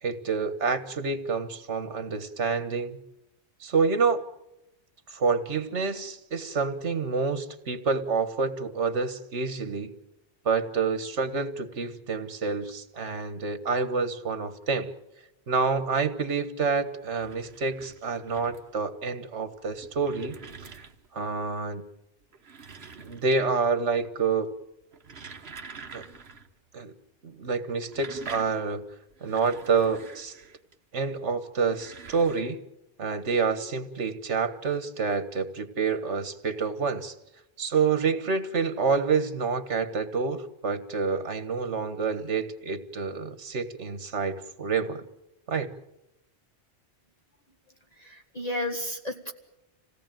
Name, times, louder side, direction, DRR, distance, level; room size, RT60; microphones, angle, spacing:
voice 1, 0.0-3.0 3.6-4.2 5.1-9.9 10.4-14.9 15.5-20.4 20.7-20.8 21.1-21.8 23.0-24.5 25.9-26.0 26.7-26.9 27.2-28.8 29.2-30.3 30.9-32.6 33.0-37.1 37.6-45.1 45.5-45.7, right 5 dB, 75° right, 11 dB, 1.7 m, -28 dB
sound 1, 16.9-18.8 19.5-21.2 22.2-23.6 23.9-24.4 24.8-26.5 26.8-26.9 27.7-30.7 31.5-32.4, right 5 dB, 60° right, 1.5 m, -46 dB
voice 2, 48.0-49.3, left 1 dB, 35° left, 3 dB, 1.7 m, -32 dB
26.5 x 17.5 x 9.1 m, 0.91 s
omnidirectional pair, 1.2 m